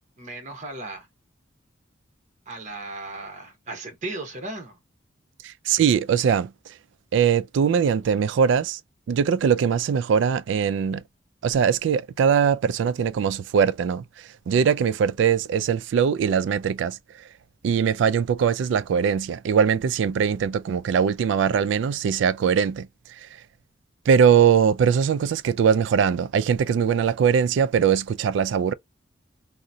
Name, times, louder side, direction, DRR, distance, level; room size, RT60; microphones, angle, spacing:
voice 1, 0.2-1.1 2.5-4.8, right 2 dB, 40° right, 0.9 m, -36 dB
voice 2, 5.4-6.5 7.1-8.8 9.1-11.0 11.4-17.0 17.6-22.9 23.2-23.3 24.1-28.7, right 7 dB, 70° right, 0.3 m, -21 dB
3.8 x 2.0 x 2.7 m
head